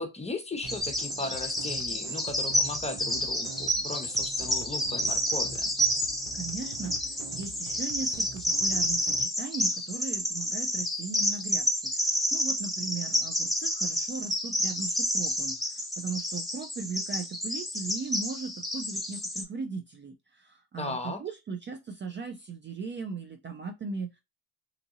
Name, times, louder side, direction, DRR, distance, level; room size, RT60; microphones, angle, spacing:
voice 1, 0.0-5.7 20.8-21.2, left 3 dB, 15° left, 0.8 m, -37 dB
sound 1, 0.6-9.3, right 5 dB, 85° right, 0.7 m, -45 dB
Bird vocalization bird call bird song, 0.7-19.4, equal, ahead, 1.2 m, -30 dB
voice 2, 6.3-24.2, right 4 dB, 30° right, 0.4 m, -38 dB
2.8 x 2.6 x 2.5 m
supercardioid pair, 70°, 38 cm